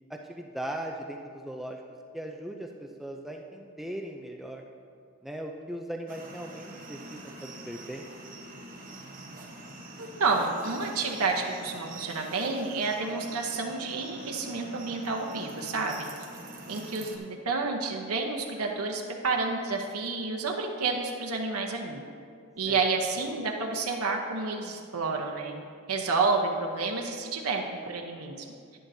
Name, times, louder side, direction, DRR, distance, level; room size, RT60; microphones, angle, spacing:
voice 1, 0.1-1.8 2.1-4.6 5.2-8.1 22.7-22.8, right 1 dB, ahead, 1 dB, 0.4 m, -39 dB
sound 1, 6.1-17.2, right 2 dB, 40° right, 1.1 m, -45 dB
voice 2, 10.0-16.1 16.7-22.0 22.6-25.6 25.9-28.4, right 4 dB, 80° right, 1 dB, 0.9 m, -30 dB
11.5 x 10.0 x 2.7 m, 2.3 s
head